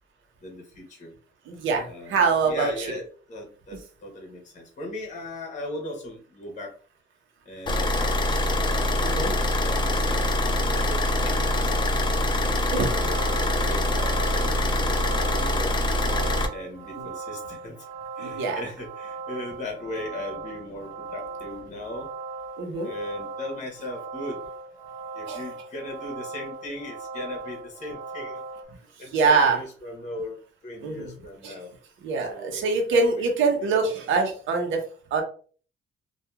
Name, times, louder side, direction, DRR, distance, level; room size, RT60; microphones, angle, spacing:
voice 1, 0.4-1.1 1.9-6.8 7.5-11.9 12.7-14.7 15.2-15.8 16.5-17.8 18.2-22.1 22.8-24.4 25.1-28.4 29.0-30.4 30.6-31.7 32.3-33.3 33.5-33.7, left 1 dB, 40° left, 1 dB, 1.0 m, -38 dB
voice 2, 1.5-3.0 9.0-9.3 12.7-12.9 17.0-17.1 18.2-18.6 22.6-22.9 25.3-25.4 29.1-29.6 30.8-31.1 31.4-31.6 32.0-34.8 35.1-35.2, right 4 dB, 75° right, 3 dB, 0.7 m, -24 dB
Car / Idling, 7.7-16.5, left 1 dB, 25° left, 0.4 m, -24 dB
sound 1, 12.6-28.6, right 4 dB, 30° right, 0.7 m, -38 dB
2.8 x 2.3 x 2.3 m, 0.41 s
cardioid pair, 90°, 20 cm